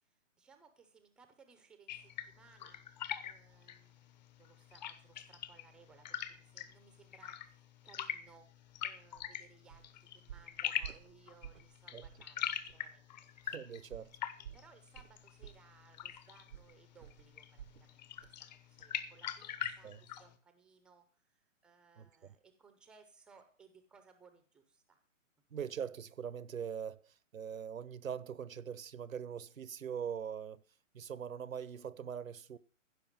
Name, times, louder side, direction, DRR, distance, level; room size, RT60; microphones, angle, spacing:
voice 1, 0.0-13.3 14.5-18.3 18.6-25.0, right 5 dB, ahead, 0.6 m, -63 dB
sound 1, 1.9-20.3, left 10 dB, 35° left, 1.1 m, -44 dB
sound 2, 9.1-9.3 9.7-9.9 10.3-11.7 12.0-12.3 12.7-12.8 13.9-17.9 18.2-18.4 18.8-18.9, right 10 dB, 60° right, 0.7 m, -52 dB
voice 2, 13.4-14.1 19.8-20.0 22.0-22.3 25.5-30.6 30.9-32.6, right 8 dB, 85° right, 1.0 m, -42 dB
15.5 x 5.9 x 7.3 m
hypercardioid pair, 145°, 39 cm